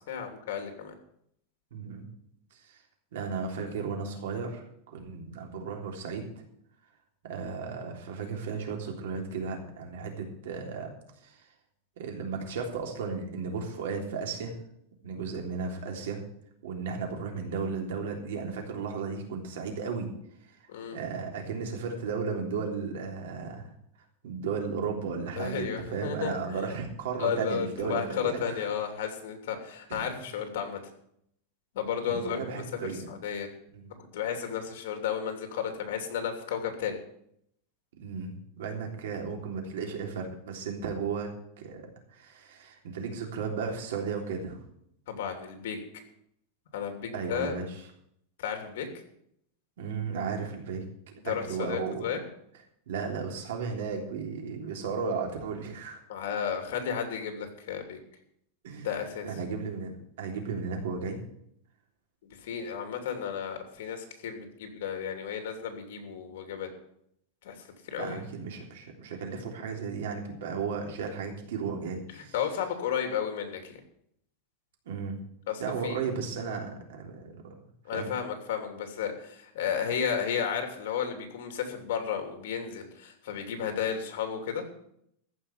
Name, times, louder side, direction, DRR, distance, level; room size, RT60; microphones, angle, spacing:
voice 1, 0.1-0.9 20.7-21.0 25.4-26.4 27.2-30.8 31.7-32.6 33.1-33.5 34.1-37.0 45.1-45.8 46.7-47.5 48.4-48.9 51.2-52.2 56.1-58.0 58.8-59.3 62.2-66.7 67.4-67.6 67.8-68.2 72.1-73.7 75.5-76.0 77.9-84.6, left 8 dB, 65° left, 5 dB, 2.9 m, -33 dB
voice 2, 1.7-2.0 2.5-2.8 3.1-6.4 7.2-10.9 11.2-11.4 12.0-14.5 15.0-16.2 16.6-20.1 20.4-20.6 20.9-23.6 24.2-28.6 29.9-30.2 32.1-33.1 33.7-34.0 38.0-41.3 41.6-41.8 42.1-44.6 47.1-47.8 49.8-52.1 52.9-56.0 58.6-58.9 59.2-61.2 68.0-72.3 74.9-75.2 75.6-77.4 77.9-78.1, right 5 dB, 80° right, 2 dB, 3.4 m, -35 dB
14.5 x 5.6 x 9.3 m, 0.72 s
supercardioid pair, 170°, 0 cm